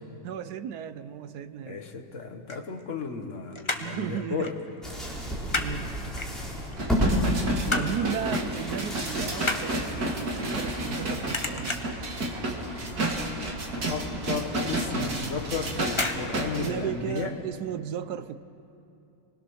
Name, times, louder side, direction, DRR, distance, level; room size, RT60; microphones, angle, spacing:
voice 1, 0.2-1.8 3.8-4.6 5.0-5.3 5.5-6.0 7.7-11.8 12.4-12.6 16.6-18.4, right 9 dB, 65° right, 12 dB, 1.0 m, -35 dB
voice 2, 1.6-4.5 13.9-17.3, left 5 dB, 40° left, 4 dB, 1.6 m, -34 dB
sound 1, 2.3-3.3 3.5-4.0 4.4-4.6 4.9-5.7 6.2-6.7 7.2-8.0 8.3-8.6 8.9-11.0 11.3-12.0 12.5-12.8 13.1-13.2 13.5-13.6 14.1-14.2 15.0-15.3 15.9-16.2 16.5-16.6, left 2 dB, 20° left, 0.8 m, -32 dB
sound 2, 4.8-16.7, equal, ahead, 4.3 m, -34 dB
sound 3, 6.8-16.7 17.2-17.3, right 1 dB, 50° right, 2.5 m, -31 dB
27.5 x 20.5 x 6.4 m, 2.7 s
omnidirectional pair, 2.2 m